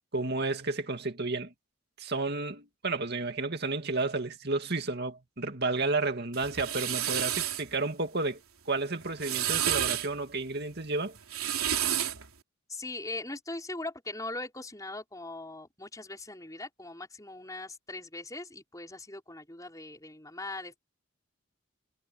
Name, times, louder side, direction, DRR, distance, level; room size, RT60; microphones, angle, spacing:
voice 1, 0.1-1.5 2.0-8.4 8.7-11.1, right 3 dB, 50° right, 2.4 m, -31 dB
sound 1, 6.3-7.6 9.0-10.1 11.2-12.3, right 11 dB, 85° right, 3.4 m, -30 dB
voice 2, 12.7-20.8, left 2 dB, 15° left, 5.0 m, -40 dB
head